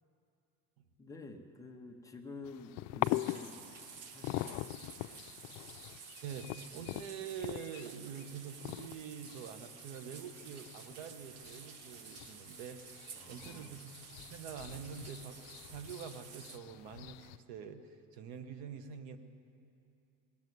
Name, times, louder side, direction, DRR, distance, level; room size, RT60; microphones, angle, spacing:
voice 1, 1.0-3.6 4.1-4.7 13.1-13.8, left 3 dB, 10° left, 2 dB, 0.6 m, -50 dB
sound 1, 2.4-17.4, left 17 dB, 85° left, 0.5 m, -43 dB
sound 2, 3.0-16.6, right 7 dB, 45° right, 0.8 m, -52 dB
voice 2, 6.2-19.2, right 7 dB, 85° right, 9 dB, 1.1 m, -46 dB
20.0 x 7.3 x 9.4 m, 2.6 s
cardioid pair, 170°, 35 cm